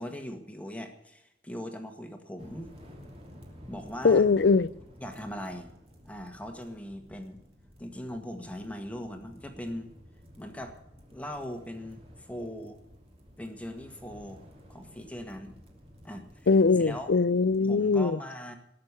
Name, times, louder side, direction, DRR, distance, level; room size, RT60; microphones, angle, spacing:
voice 1, 0.0-2.7 3.7-4.3 5.0-5.7 6.0-7.4 7.8-9.9 10.4-10.8 11.1-12.8 13.4-14.4 14.7-15.6 16.0-16.5 16.8-17.1 17.7-18.6, equal, 10° left, 1.7 m, -40 dB
sound 1, 2.4-17.6, equal, 35° right, 2.9 m, -53 dB
voice 2, 4.0-4.7 16.5-18.2, left 4 dB, 70° left, 0.5 m, -22 dB
20.0 x 6.8 x 8.3 m
head